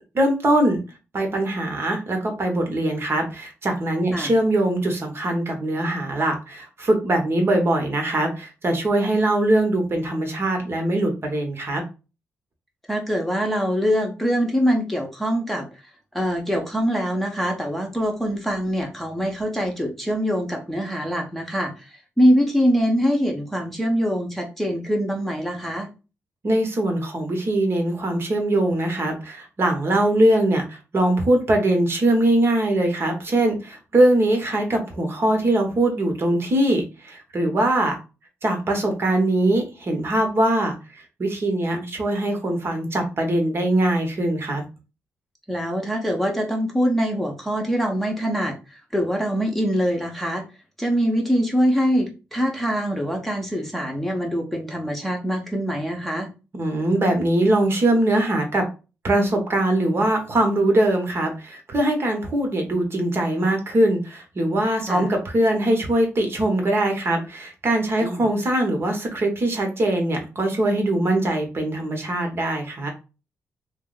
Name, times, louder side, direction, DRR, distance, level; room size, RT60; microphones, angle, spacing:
voice 1, 0.1-0.8 1.1-11.8 26.4-38.0 38.4-40.8 41.2-44.6 56.6-58.6 59.0-72.9, right 1 dB, 45° right, 3 dB, 0.9 m, -22 dB
voice 2, 12.9-15.7 16.1-21.9 22.2-25.9 41.6-41.8 45.5-48.5 48.9-50.4 50.8-56.3 64.9-65.1 68.0-68.3, equal, 5° left, 1 dB, 0.8 m, -23 dB
2.5 x 2.0 x 3.8 m, 0.31 s
cardioid pair, 75°, 6 cm